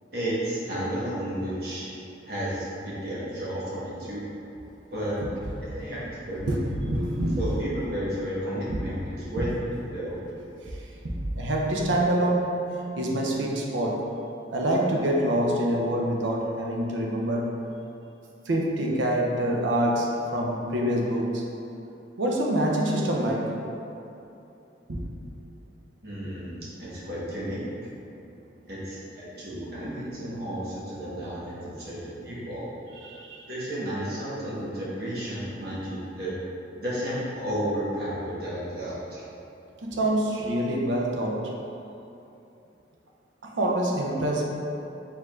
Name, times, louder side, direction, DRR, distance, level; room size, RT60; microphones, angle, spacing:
voice 1, 0.1-1.9 2.3-4.2 4.9-5.2 5.6-6.4 7.4-9.0 9.3-9.5 9.9-10.2 26.0-27.6 28.7-32.7 33.5-36.3 36.8-39.2, right 1 dB, 60° right, -8 dB, 1.2 m, -32 dB
voice 2, 6.4-7.4 8.7-8.8 9.2-9.3 10.6-10.9 11.2-12.6 13.0-14.1 14.5-17.6 18.4-21.4 22.2-23.6 24.9-25.1 26.2-26.3 33.0-33.5 39.8-41.5 43.4-44.4, right 1 dB, 85° right, -1 dB, 0.6 m, -26 dB
4.6 x 3.6 x 2.4 m, 2.8 s
head